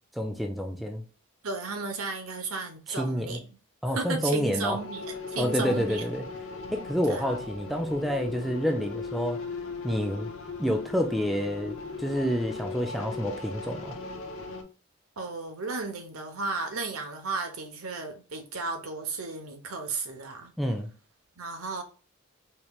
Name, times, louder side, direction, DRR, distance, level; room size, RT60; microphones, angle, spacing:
voice 1, 0.1-1.0 2.9-3.4 3.8-4.8 5.4-6.2 6.7-9.4 9.8-10.3 10.6-14.0 20.6-20.9, equal, ahead, 0.4 m, -28 dB
voice 2, 1.4-3.5 3.9-6.0 7.1-7.4 15.2-20.5 21.4-21.8, right 3 dB, 85° right, 1.0 m, -34 dB
sound 1, 4.6-14.6, left 4 dB, 75° left, 0.8 m, -38 dB
4.3 x 3.2 x 2.3 m
head